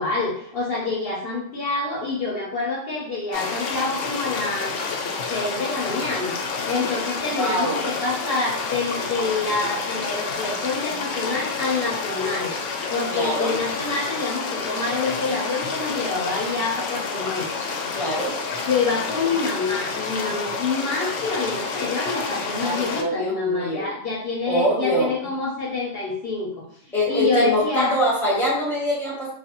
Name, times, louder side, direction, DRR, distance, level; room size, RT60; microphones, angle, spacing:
voice 1, 0.0-4.8 5.3-6.4 6.7-17.5 18.6-28.0, left 3 dB, 60° left, -4 dB, 0.8 m, -27 dB
sound 1, 3.3-23.0, left 4 dB, 85° left, 0.9 m, -29 dB
voice 2, 7.4-7.8 13.1-13.6 17.9-18.4 22.6-23.9 24.5-25.1 26.9-29.3, equal, ahead, -5 dB, 0.8 m, -24 dB
3.3 x 2.2 x 2.9 m, 0.70 s
omnidirectional pair, 1.3 m